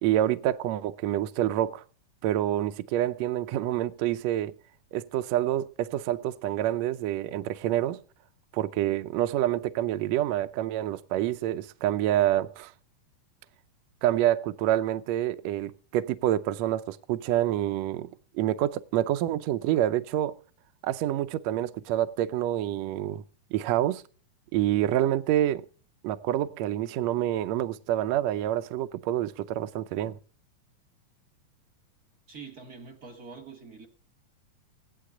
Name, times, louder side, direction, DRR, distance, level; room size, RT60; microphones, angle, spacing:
voice 1, 0.0-1.8 2.2-4.5 4.9-8.0 8.5-12.7 14.0-20.4 20.8-23.2 23.5-24.0 24.5-25.7 26.0-30.2, right 12 dB, 75° right, 1.7 m, -27 dB
voice 2, 32.3-33.9, right 5 dB, 45° right, 1.3 m, -45 dB
16.0 x 11.5 x 3.7 m
omnidirectional pair, 3.7 m